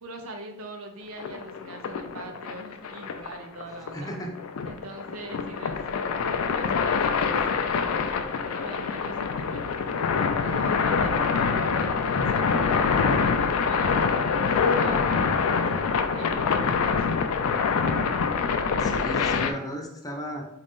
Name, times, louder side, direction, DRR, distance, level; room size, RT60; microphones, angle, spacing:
voice 1, 0.0-4.1 4.6-9.6 10.4-17.2, right 2 dB, 70° right, 3 dB, 0.6 m, -42 dB
sound 1, 1.2-19.5, left 5 dB, 75° left, 0.4 m, -25 dB
voice 2, 3.9-4.3 18.7-20.4, equal, 15° left, 1 dB, 0.6 m, -35 dB
3.9 x 2.6 x 3.6 m, 0.81 s
head